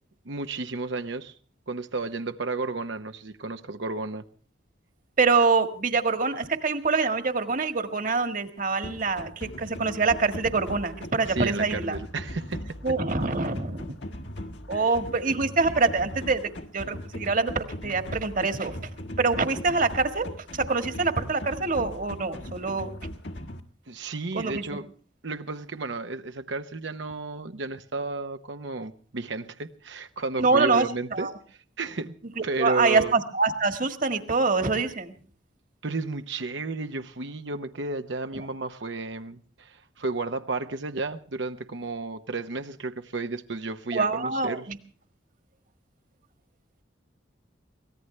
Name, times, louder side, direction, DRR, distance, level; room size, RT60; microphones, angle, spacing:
voice 1, 0.2-1.3 1.7-4.2 11.2-12.6 14.7-14.8 23.9-24.9 25.2-31.3 31.8-32.1 32.4-33.1 35.8-44.7, right 3 dB, 70° right, 7 dB, 0.9 m, -32 dB
voice 2, 5.2-12.0 12.8-14.0 14.7-18.9 19.2-20.3 20.5-22.9 24.3-24.6 30.4-30.9 31.1-31.3 32.4-35.1 43.9-44.8, right 4 dB, 45° right, 8 dB, 1.6 m, -25 dB
sound 1, 8.8-23.6, left 1 dB, 65° left, 1.8 m, -39 dB
24.0 x 18.0 x 3.3 m, 0.42 s
head